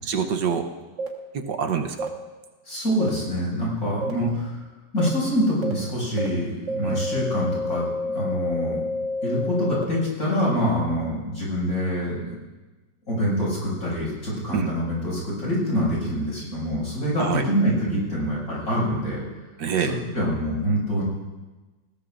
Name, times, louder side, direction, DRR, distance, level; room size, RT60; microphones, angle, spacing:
voice 1, 0.0-0.7 1.3-2.1 4.2-4.3 6.8-7.0 14.5-14.7 17.2-17.4 19.6-19.9, right 7 dB, 75° right, 5 dB, 1.5 m, -26 dB
sound 1, 1.0-1.1 2.0-2.1 3.0-3.1 4.0-4.1 5.0-5.1 5.6-5.7 6.2-6.3 6.7-9.8, left 1 dB, 45° right, 1.7 m, -28 dB
voice 2, 2.6-4.6 4.9-8.8 9.2-12.2 13.1-19.2 19.8-21.0, equal, 50° left, -7 dB, 6.8 m, -25 dB
21.0 x 17.0 x 2.5 m, 1.2 s
omnidirectional pair, 1.9 m